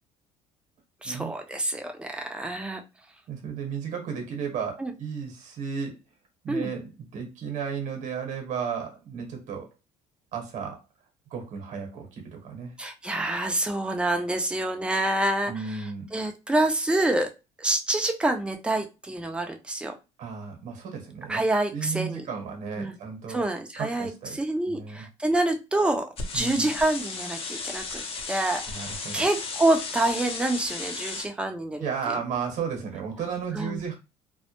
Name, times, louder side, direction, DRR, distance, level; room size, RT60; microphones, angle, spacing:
voice 1, 1.0-2.8 4.8-4.9 6.5-6.7 12.8-17.3 17.6-19.9 21.3-22.3 22.8-23.0 23.3-32.1 33.5-33.8, right 1 dB, 5° right, 4 dB, 0.5 m, -27 dB
voice 2, 3.3-6.0 6.4-9.7 10.3-10.8 11.3-12.7 15.5-16.1 20.2-21.4 21.7-23.5 23.8-24.4 24.7-25.0 26.3-26.7 28.7-29.3 31.8-33.9, right 6 dB, 55° right, 3 dB, 0.9 m, -34 dB
sound 1, 26.2-31.3, left 4 dB, 40° left, 0.7 m, -35 dB
2.1 x 2.0 x 2.9 m, 0.27 s
supercardioid pair, 80°, 15 cm